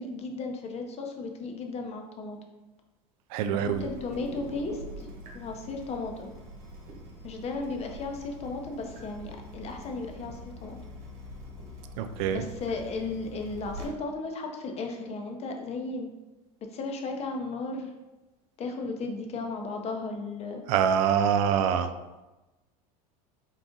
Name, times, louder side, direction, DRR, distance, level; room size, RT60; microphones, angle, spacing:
voice 1, 0.0-2.4 3.5-5.1 5.3-6.3 7.2-10.8 12.3-16.1 16.7-17.9 18.6-20.6 21.8-21.9, left 3 dB, 35° left, 3 dB, 0.6 m, -35 dB
voice 2, 3.3-3.8 12.0-12.4 20.7-21.9, right 8 dB, 70° right, 9 dB, 0.4 m, -25 dB
Water tap faucet / Drip, 3.7-13.9, equal, 90° right, 1.1 m, -44 dB
3.8 x 2.4 x 3.8 m, 1.1 s
supercardioid pair, 100°, 19 cm